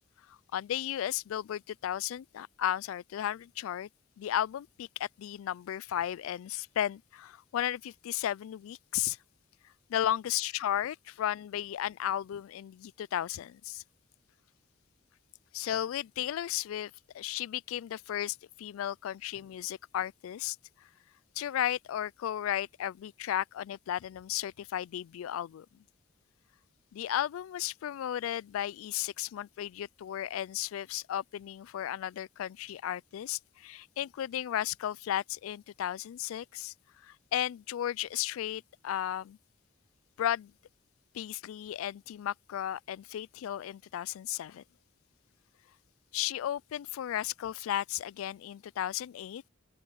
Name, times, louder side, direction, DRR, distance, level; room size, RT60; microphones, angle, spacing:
voice 1, 0.3-3.9 4.2-9.2 9.9-13.8 15.5-20.6 21.4-25.7 26.9-36.7 37.0-39.4 40.2-40.5 41.1-44.6 46.1-49.4, left 11 dB, 70° left, 0.3 m, -34 dB
open air
head